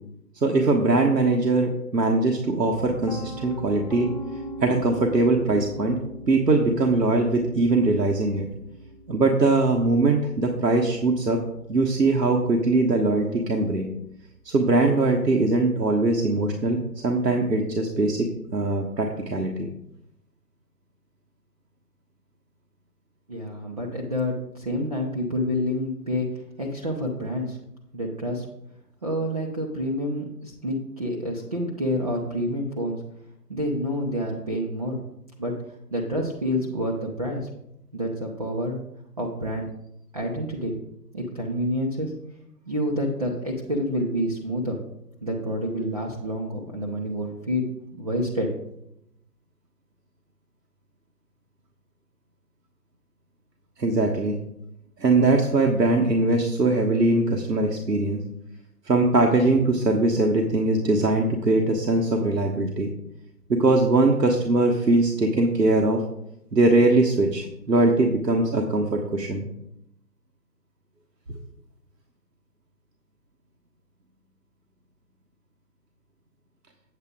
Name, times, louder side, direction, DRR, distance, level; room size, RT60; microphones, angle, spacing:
voice 1, 0.4-4.1 4.6-6.0 6.3-8.5 9.1-11.4 11.7-13.9 14.4-19.7 53.8-54.4 55.0-58.2 58.8-62.9 63.5-66.0 66.5-69.5, right 2 dB, 80° right, 1 dB, 1.3 m, -21 dB
Piano, 2.7-14.6, equal, 30° left, 0.5 m, -41 dB
voice 2, 23.3-26.3 26.6-27.6 27.9-28.5 29.0-33.0 33.5-35.0 35.4-35.6 35.9-37.5 37.9-38.8 39.2-39.6 40.1-40.7 41.1-42.2 42.7-44.8 45.2-48.5, equal, 25° right, -3 dB, 0.6 m, -28 dB
8.2 x 8.1 x 3.7 m, 0.81 s
figure-of-eight pair, 145°, 49 cm